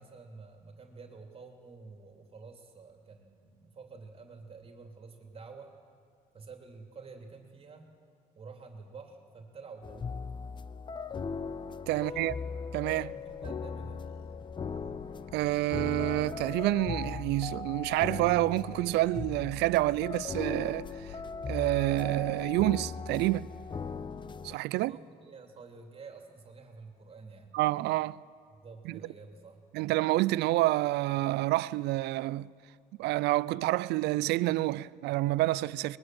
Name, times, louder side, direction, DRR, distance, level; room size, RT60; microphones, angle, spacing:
voice 1, 0.0-5.7 6.3-7.9 8.3-10.1 11.9-12.4 13.1-14.0 24.4-27.5 28.5-29.6, right 4 dB, 35° right, 2.9 m, -49 dB
sound 1, 9.8-24.6, left 5 dB, 30° left, 0.7 m, -38 dB
voice 2, 11.9-12.3 12.7-13.1 15.3-21.2 21.5-23.5 24.4-24.9 27.5-28.2 28.9-29.0 29.7-32.5 33.0-36.0, right 18 dB, 85° right, 0.5 m, -28 dB
Gull seagull, 12.9-24.1, left 8 dB, 65° left, 1.4 m, -56 dB
22.0 x 21.0 x 7.8 m
cardioid pair, 110°, 17 cm